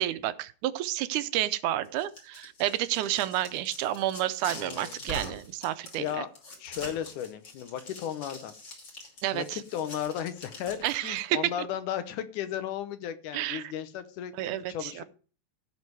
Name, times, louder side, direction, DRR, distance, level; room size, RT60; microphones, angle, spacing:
voice 1, 0.0-6.2 9.2-9.6 10.8-11.4 13.3-13.7 14.4-15.0, right 13 dB, 85° right, 13 dB, 2.1 m, -30 dB
sound 1, 1.9-11.2, left 1 dB, 35° left, 3.1 m, -44 dB
voice 2, 4.5-5.0 6.0-6.3 6.6-8.5 9.3-15.0, left 10 dB, 85° left, 11 dB, 2.4 m, -35 dB
15.5 x 5.4 x 4.6 m, 0.40 s
omnidirectional pair, 3.5 m